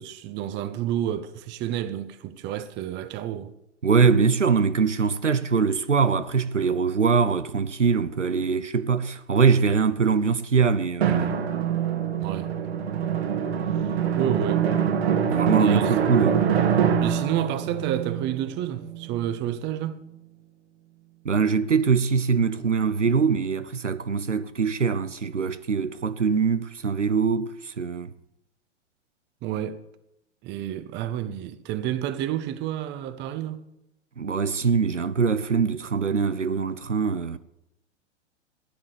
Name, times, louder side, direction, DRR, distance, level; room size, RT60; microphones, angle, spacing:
voice 1, 0.0-3.5 12.2-12.5 13.6-14.7 15.5-15.9 17.0-20.0 29.4-29.8 30.4-33.6, right 11 dB, 30° right, 1.3 m, -30 dB
voice 2, 3.8-11.3 15.3-16.4 21.2-28.1 34.2-37.4, right 5 dB, 85° right, 0.8 m, -23 dB
Drum, 11.0-19.3, right 8 dB, 60° right, 2.3 m, -24 dB
17.0 x 10.5 x 6.9 m
figure-of-eight pair, 100°, 35 cm